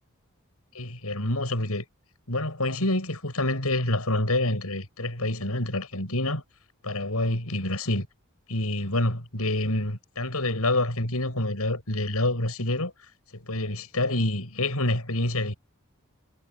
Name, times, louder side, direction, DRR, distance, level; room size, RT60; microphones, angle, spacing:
voice 1, 0.7-1.8 2.3-6.4 6.8-8.1 8.5-12.9 13.3-15.5, left 1 dB, 90° left, 7.6 m, -27 dB
head